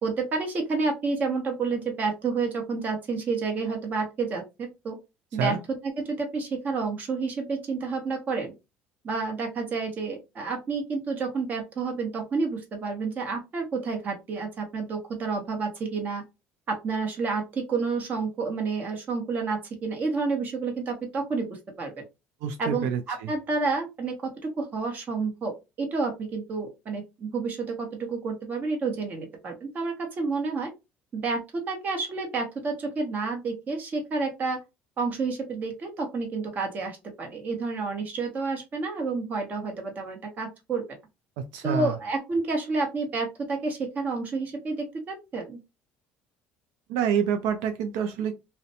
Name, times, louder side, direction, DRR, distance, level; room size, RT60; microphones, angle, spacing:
voice 1, 0.0-5.0 5.3-5.6 5.8-8.5 9.0-16.2 16.7-21.9 22.6-30.7 31.1-34.6 35.0-40.8 41.6-45.6, right 4 dB, 35° right, 1.0 m, -30 dB
voice 2, 22.4-23.3 41.5-42.0 46.9-48.3, right 7 dB, 85° right, 0.4 m, -27 dB
2.4 x 2.1 x 2.7 m
cardioid pair, 120°, 5 cm